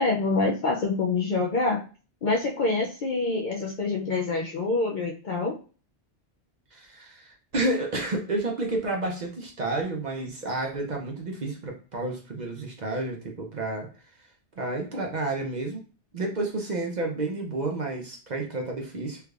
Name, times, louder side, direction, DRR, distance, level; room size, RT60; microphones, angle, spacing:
voice 1, 0.0-1.8 2.2-5.6, left 3 dB, 55° left, -1 dB, 0.5 m, -26 dB
voice 2, 6.7-13.9 14.6-15.8 16.1-19.2, right 2 dB, 45° right, 1 dB, 0.7 m, -30 dB
3.4 x 3.1 x 2.4 m, 0.37 s
omnidirectional pair, 1.1 m